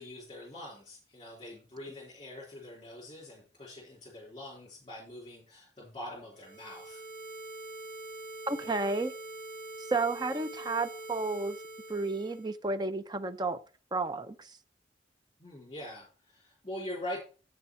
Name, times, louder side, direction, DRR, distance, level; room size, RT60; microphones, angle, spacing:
voice 1, 0.0-7.0 15.4-17.2, left 1 dB, 25° left, 3.5 m, -43 dB
sound 1, 6.4-12.5, right 2 dB, 50° right, 1.3 m, -44 dB
voice 2, 8.5-9.1 9.9-11.6 11.9-13.6 13.9-14.6, right 3 dB, 25° right, 0.6 m, -32 dB
8.0 x 6.9 x 4.6 m
head